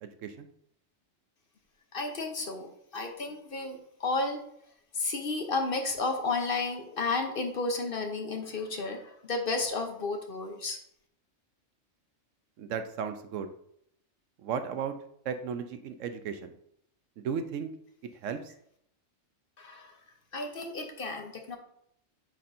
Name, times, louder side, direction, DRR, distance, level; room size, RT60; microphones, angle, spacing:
voice 1, 0.0-0.5 12.6-13.5 14.4-14.9 15.3-16.5 17.2-17.7 18.2-18.4, right 7 dB, 75° right, 8 dB, 1.0 m, -35 dB
voice 2, 1.9-4.4 4.9-10.8 19.6-19.9 20.3-21.6, left 3 dB, 50° left, 4 dB, 0.9 m, -32 dB
9.2 x 4.3 x 2.6 m, 0.71 s
omnidirectional pair, 1.3 m